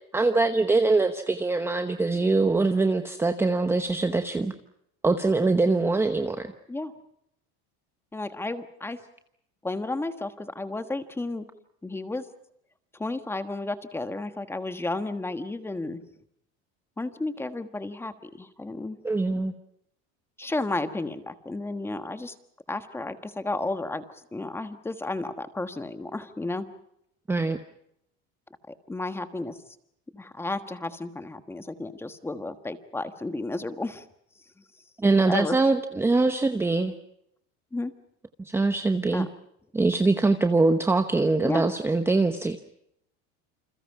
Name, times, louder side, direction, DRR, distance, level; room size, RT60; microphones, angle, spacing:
voice 1, 0.1-4.5 5.0-6.5 19.0-19.5 27.3-27.6 35.0-36.9 38.4-39.3 39.7-42.6, right 3 dB, 10° right, 7 dB, 0.9 m, -23 dB
voice 2, 8.1-9.0 9.6-11.4 11.8-12.2 12.9-16.0 17.0-19.0 20.4-22.3 22.7-24.0 24.3-26.7 28.9-29.6 30.1-34.0 35.3-35.6 37.7-37.9 39.1-39.3 41.4-41.6, left 2 dB, 5° left, 9 dB, 1.4 m, -32 dB
28.5 x 27.5 x 4.8 m, 0.75 s
cardioid pair, 160°, 32 cm